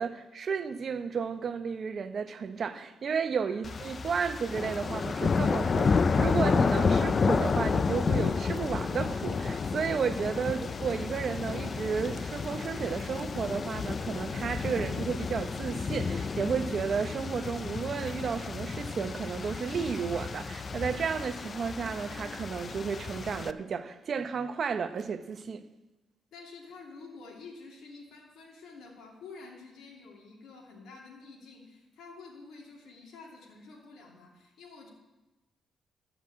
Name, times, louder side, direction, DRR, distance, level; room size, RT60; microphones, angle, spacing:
voice 1, 0.0-25.7, right 6 dB, 50° right, 0.8 m, -33 dB
sound 1, 3.6-23.5, left 5 dB, 40° left, 0.5 m, -31 dB
voice 2, 26.3-34.9, left 4 dB, 80° left, 2.7 m, -49 dB
13.0 x 6.1 x 8.4 m
cardioid pair, 100°, 0 cm